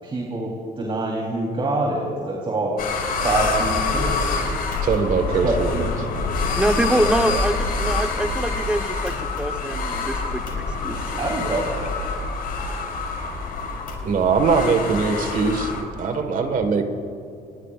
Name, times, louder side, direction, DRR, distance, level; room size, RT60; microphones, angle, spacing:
voice 1, 0.0-2.7 3.2-4.5 5.4-6.2 6.7-7.1 11.2-11.7, right 2 dB, 30° right, -2 dB, 3.6 m, -26 dB
sound 1, 2.8-15.8, left 3 dB, 60° left, 4.9 m, -26 dB
voice 2, 4.8-5.8 14.0-16.9, right 5 dB, 55° right, 7 dB, 1.7 m, -21 dB
voice 3, 6.5-11.6, right 1 dB, 5° right, 7 dB, 1.0 m, -25 dB
29.5 x 19.5 x 2.5 m, 2.8 s
cardioid pair, 110°, 17 cm